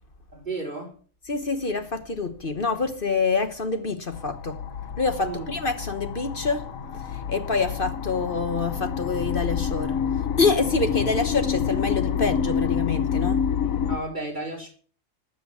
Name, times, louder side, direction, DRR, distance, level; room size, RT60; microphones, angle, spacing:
voice 1, 0.3-0.9 5.2-5.5 13.9-14.7, right 2 dB, 35° right, 4.6 m, -33 dB
voice 2, 1.3-4.6 5.0-6.7 7.1-10.1 10.4-13.5, left 4 dB, 45° left, 1.3 m, -26 dB
sound 1, 4.1-14.0, left 7 dB, 90° left, 1.4 m, -28 dB
13.5 x 7.6 x 8.4 m
omnidirectional pair, 1.4 m